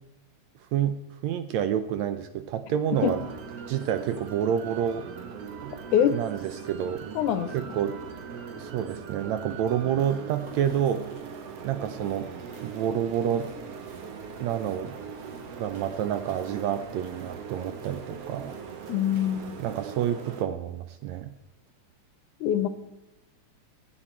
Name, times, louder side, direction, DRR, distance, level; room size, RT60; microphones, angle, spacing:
voice 1, 1.2-3.2 3.7-5.1 5.6-5.7 6.1-7.1 7.5-8.0 8.6-11.1 11.6-12.3 12.6-13.5 14.4-15.0 15.6-18.6 19.6-21.3, right 9 dB, 75° right, 11 dB, 1.7 m, -28 dB
sound 1, 2.9-20.4, right 6 dB, 60° right, 2.0 m, -40 dB
voice 2, 7.2-7.5 18.9-19.5 22.4-22.7, left 10 dB, 75° left, 13 dB, 2.2 m, -24 dB
sound 2, 10.4-20.0, right 3 dB, 40° right, 3.7 m, -51 dB
24.0 x 8.7 x 4.4 m, 1.0 s
omnidirectional pair, 3.7 m